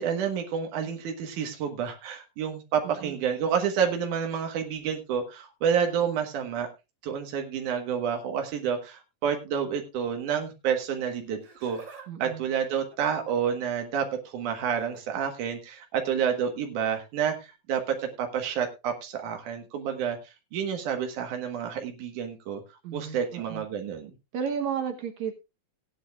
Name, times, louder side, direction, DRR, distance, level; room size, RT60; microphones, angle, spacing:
voice 1, 0.0-6.7 7.0-11.8 12.2-20.2 20.5-22.6 22.9-24.1, right 7 dB, 90° right, 4 dB, 2.9 m, -29 dB
Laughter, 11.3-12.1 12.4-13.7 14.6-15.0 16.3-16.5 17.4-17.5, right 5 dB, 55° right, 2.8 m, -49 dB
voice 2, 12.1-12.4 22.8-23.7 24.3-25.4, right 7 dB, 70° right, 4 dB, 2.4 m, -33 dB
18.5 x 10.0 x 2.4 m, 0.25 s
omnidirectional pair, 3.4 m